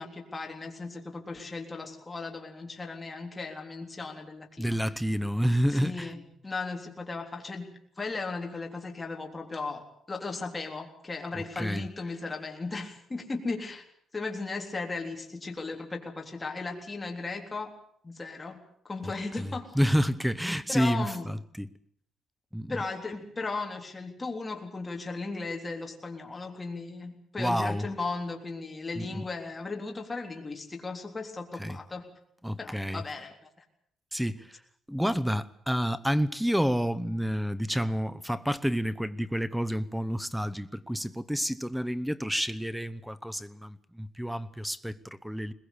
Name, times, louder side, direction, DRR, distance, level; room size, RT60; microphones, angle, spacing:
voice 1, 0.0-4.8 5.7-13.8 14.1-17.7 18.0-19.7 20.7-21.3 22.7-32.0 32.6-33.3, left 3 dB, 20° left, 3.6 m, -36 dB
voice 2, 4.6-6.1 11.3-11.9 19.0-19.1 19.4-21.7 22.5-22.8 27.4-27.9 29.0-29.3 31.6-31.8 32.4-33.0 34.1-34.6 34.9-45.5, equal, ahead, 0.9 m, -29 dB
21.5 x 21.0 x 8.5 m
cardioid pair, 135°, 0 cm